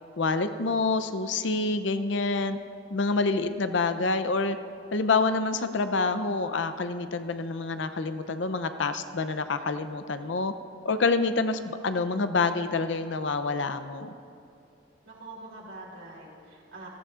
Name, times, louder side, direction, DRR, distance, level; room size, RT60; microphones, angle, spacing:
voice 1, 0.2-2.6 2.9-4.6 4.9-10.5 10.8-14.1, left 3 dB, 75° left, 10 dB, 0.6 m, -27 dB
voice 2, 15.0-16.9, right 2 dB, 90° right, -4 dB, 3.1 m, -44 dB
18.0 x 14.0 x 2.5 m, 2.6 s
head